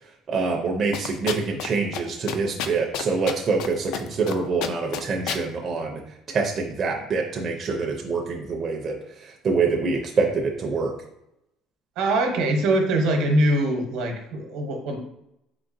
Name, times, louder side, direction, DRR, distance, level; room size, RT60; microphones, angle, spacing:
voice 1, 0.3-6.0 6.3-10.9, right 4 dB, 30° right, 1 dB, 0.5 m, -25 dB
sound 1, 0.9-1.7 1.9-2.0 2.3-3.7 3.9-4.3 4.6-5.4, left 8 dB, 70° left, 0.3 m, -29 dB
voice 2, 12.0-15.0, right 1 dB, 75° right, 3 dB, 0.9 m, -22 dB
4.0 x 3.8 x 2.6 m, 0.82 s
cardioid pair, 155°, 0 cm